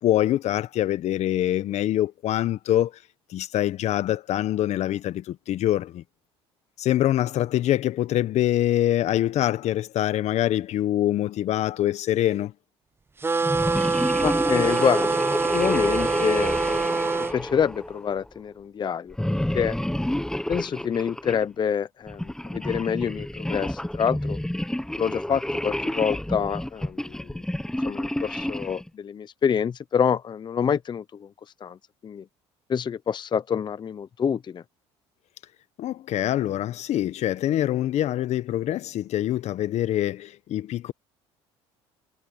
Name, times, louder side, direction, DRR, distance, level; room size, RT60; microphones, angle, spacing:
voice 1, 0.0-2.9 3.3-6.0 6.8-12.5 35.8-40.9, left 13 dB, 55° left, 1.3 m, -24 dB
sound 1, 13.2-17.3, right 4 dB, 15° right, 0.6 m, -25 dB
sound 2, 13.4-18.3 19.1-21.4 22.1-28.9, left 1 dB, 5° left, 1.0 m, -29 dB
voice 2, 14.2-15.2 15.5-17.0 17.3-19.2 19.5-19.8 20.5-24.4 25.0-27.3 27.8-31.3 31.6-31.8 32.0-32.2 32.7-34.6, left 7 dB, 35° left, 0.8 m, -27 dB
supercardioid pair, 80°, 13 cm